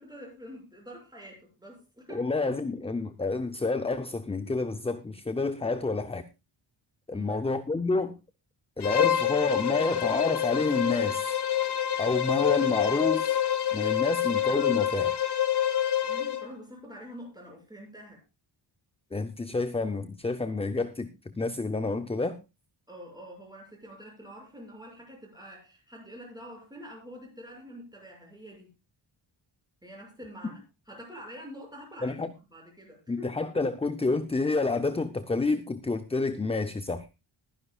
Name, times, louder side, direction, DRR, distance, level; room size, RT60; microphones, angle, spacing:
voice 1, 0.0-2.3 7.1-7.4 16.0-18.2 22.9-28.7 29.8-32.2 32.5-33.3, equal, 10° right, -1 dB, 6.8 m, -46 dB
voice 2, 2.1-6.2 7.1-8.2 8.8-11.3 12.0-13.4 13.7-15.1 19.1-21.1 21.4-22.4 32.0-32.3 33.1-37.1, left 3 dB, 15° left, 10 dB, 0.5 m, -29 dB
Bowed string instrument, 8.8-16.5, left 10 dB, 55° left, 1.1 m, -27 dB
21.0 x 10.5 x 2.3 m, 0.26 s
wide cardioid pair, 155°, 48 cm